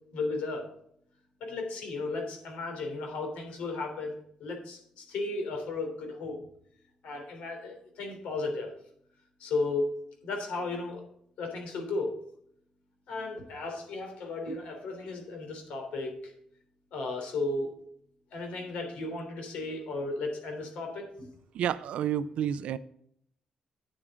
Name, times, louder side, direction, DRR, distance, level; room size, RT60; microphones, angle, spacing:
voice 1, 0.1-0.7 1.4-6.4 7.0-8.7 9.4-9.9 10.2-11.0 11.4-12.2 13.1-16.3 16.9-17.8 18.3-21.3, left 3 dB, 90° left, 3 dB, 3.3 m, -34 dB
voice 2, 21.5-22.8, right 9 dB, 80° right, 15 dB, 0.5 m, -30 dB
9.8 x 9.6 x 3.7 m, 0.68 s
cardioid pair, 105°, 2 cm